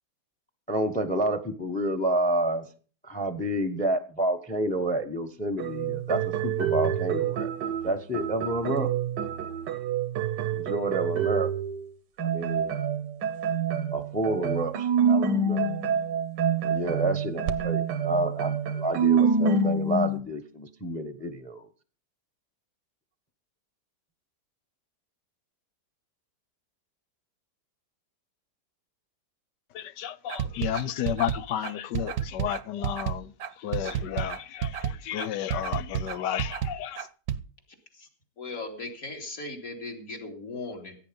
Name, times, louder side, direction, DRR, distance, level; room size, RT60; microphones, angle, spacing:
voice 1, 0.7-2.7 3.0-7.5 7.8-8.9 10.5-11.5 12.2-12.7 13.9-15.7 16.6-21.6, right 1 dB, 5° left, 0.9 m, -29 dB
sound 1, 5.6-11.8 12.2-20.2, right 5 dB, 90° right, 1.7 m, -27 dB
voice 2, 29.7-37.1, left 11 dB, 85° left, 1.4 m, -32 dB
sound 2, 30.3-37.4, right 9 dB, 65° right, 1.2 m, -31 dB
voice 3, 38.4-41.0, left 3 dB, 55° left, 3.1 m, -38 dB
16.0 x 9.2 x 5.3 m
omnidirectional pair, 1.8 m